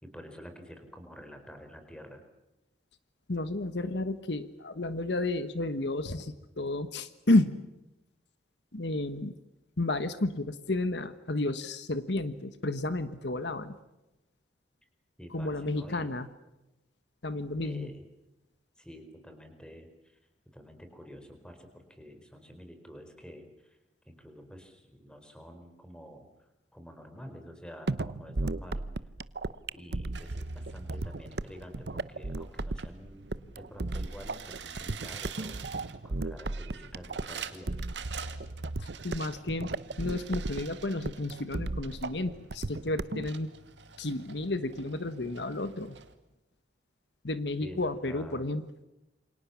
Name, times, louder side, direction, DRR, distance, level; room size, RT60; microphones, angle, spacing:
voice 1, 0.0-2.2 14.8-14.9 15.2-16.1 17.6-18.0 18.8-20.2 20.4-23.8 24.0-28.9 29.7-35.6 36.0-37.9 47.6-48.4, equal, 5° left, 6 dB, 4.5 m, -48 dB
voice 2, 3.3-7.5 8.7-9.3 9.8-13.7 15.3-16.3 17.2-17.9 38.8-39.7 40.0-43.5 44.0-46.0 47.2-48.6, left 2 dB, 75° left, 11 dB, 1.4 m, -31 dB
sound 1, 27.9-43.3, right 2 dB, 65° right, 0.8 m, -35 dB
sound 2, 30.1-46.1, right 6 dB, 80° right, 2.3 m, -48 dB
28.5 x 25.0 x 7.2 m, 0.97 s
head